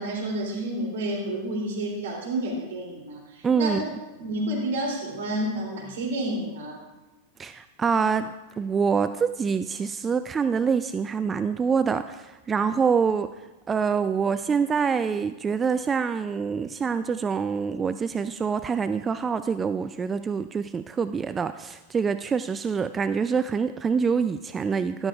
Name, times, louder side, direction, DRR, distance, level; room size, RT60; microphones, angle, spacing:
voice 1, 0.0-3.8 4.2-6.8, right 1 dB, 70° right, -1 dB, 3.0 m, -30 dB
voice 2, 3.4-3.9 7.4-25.1, right 6 dB, 20° right, 11 dB, 0.3 m, -26 dB
13.0 x 11.5 x 2.4 m, 1.1 s
hypercardioid pair, 95°, 0 cm